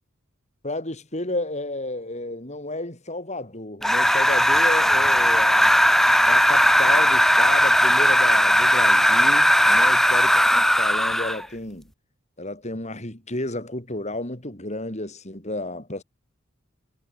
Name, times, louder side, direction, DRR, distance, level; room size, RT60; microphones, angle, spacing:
voice 1, 0.6-5.7 6.3-11.9 12.4-16.0, left 2 dB, 35° left, 4.3 m, -32 dB
sound 1, 3.8-11.5, equal, ahead, 2.1 m, -18 dB
head